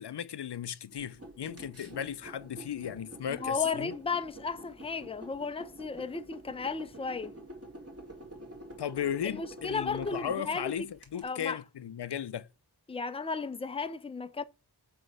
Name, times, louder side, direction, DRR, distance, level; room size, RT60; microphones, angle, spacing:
voice 1, 0.0-3.9 8.8-12.5, left 9 dB, 80° left, 0.6 m, -36 dB
sound 1, 0.9-11.2, right 1 dB, 35° right, 2.5 m, -48 dB
voice 2, 3.3-7.3 9.2-10.7 11.2-11.6 12.9-14.4, left 5 dB, 15° left, 0.5 m, -34 dB
7.8 x 3.1 x 5.5 m
wide cardioid pair, 65°, 40 cm